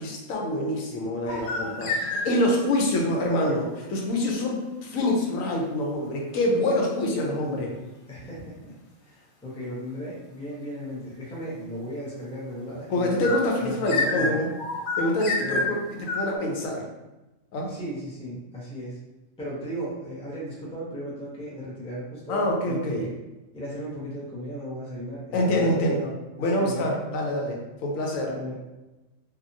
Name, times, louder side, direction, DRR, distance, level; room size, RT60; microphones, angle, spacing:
voice 1, 0.0-1.9 2.2-7.7 12.9-14.5 15.0-15.8 16.1-16.8 17.5-17.7 22.3-23.0 25.3-26.1 26.4-28.3, left 1 dB, 85° left, 0 dB, 1.0 m, -26 dB
sound 1, 1.3-2.6 13.2-16.4, left 3 dB, 60° left, 0.5 m, -29 dB
voice 2, 1.8-2.1 8.1-8.7 9.0-13.3 13.6-14.3 15.4-15.7 17.6-19.0 19.4-23.1 23.5-25.7 26.4-26.9 28.2-28.5, equal, 5° left, -7 dB, 0.6 m, -36 dB
2.8 x 2.3 x 2.5 m, 1.1 s
omnidirectional pair, 1.4 m